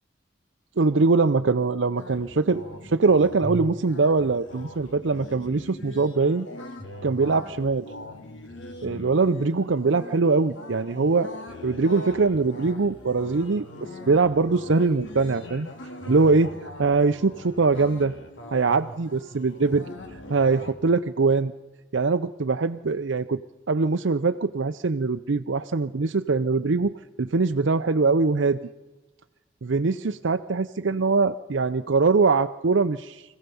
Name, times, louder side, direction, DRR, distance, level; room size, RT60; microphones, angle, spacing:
voice 1, 0.8-6.5 7.0-7.9 8.8-11.3 11.6-13.7 14.1-15.7 16.1-16.5 16.8-18.1 18.5-21.5 21.9-23.4 23.7-26.9 27.2-28.6 29.6-33.2, right 4 dB, 75° right, 8 dB, 0.6 m, -22 dB
sound 1, 2.0-20.7, left 1 dB, 80° left, 2.7 m, -41 dB
25.5 x 16.5 x 7.0 m, 1.2 s
head